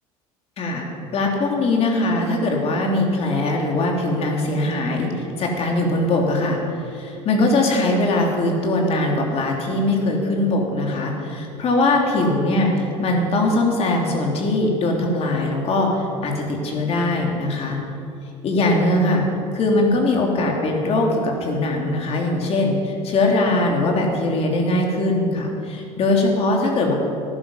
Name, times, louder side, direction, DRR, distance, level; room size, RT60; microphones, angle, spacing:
voice 1, 1.1-6.6 6.9-17.8 18.4-19.2 19.5-26.9, left 2 dB, 45° left, 0 dB, 3.1 m, -21 dB
15.0 x 11.0 x 5.7 m, 2.7 s
supercardioid pair, 90°, 14 cm